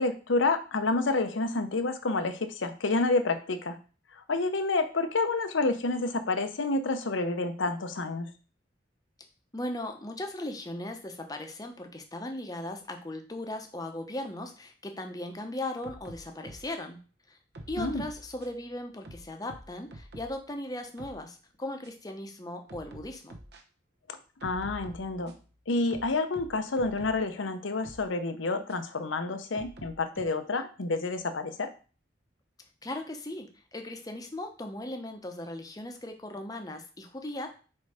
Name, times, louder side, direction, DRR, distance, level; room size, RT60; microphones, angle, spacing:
voice 1, 0.0-3.8 4.1-8.3 17.8-18.0 24.1-25.3 25.7-31.7, left 3 dB, 85° left, 9 dB, 0.8 m, -29 dB
voice 2, 9.5-17.0 17.3-17.4 17.7-23.4 32.8-37.5, left 1 dB, 20° left, 5 dB, 0.8 m, -38 dB
sound 1, 15.8-16.8 17.5-18.6 19.0-20.4 20.8-21.2 21.8-21.9 22.7-23.6 24.4-25.5 25.9-27.3 27.8-28.1 28.7-28.8 29.5-30.2, right 1 dB, 60° right, 0.9 m, -47 dB
4.8 x 4.4 x 4.8 m, 0.37 s
head